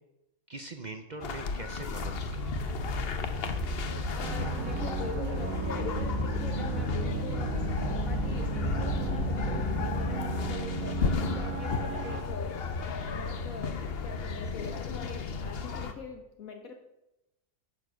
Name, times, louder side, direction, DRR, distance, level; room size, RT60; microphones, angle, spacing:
voice 1, 0.5-2.6, right 3 dB, 45° right, 6 dB, 0.6 m, -42 dB
sound 1, 1.2-15.9, left 5 dB, 50° left, 0.9 m, -34 dB
Animal, 2.0-10.1, left 1 dB, 30° right, 1.9 m, -35 dB
voice 2, 4.1-12.6 13.0-16.8, left 4 dB, 65° left, 4 dB, 1.3 m, -43 dB
sound 2, 4.2-12.2, right 12 dB, 75° right, 1.0 m, -37 dB
10.0 x 7.0 x 6.2 m, 0.91 s
omnidirectional pair, 1.6 m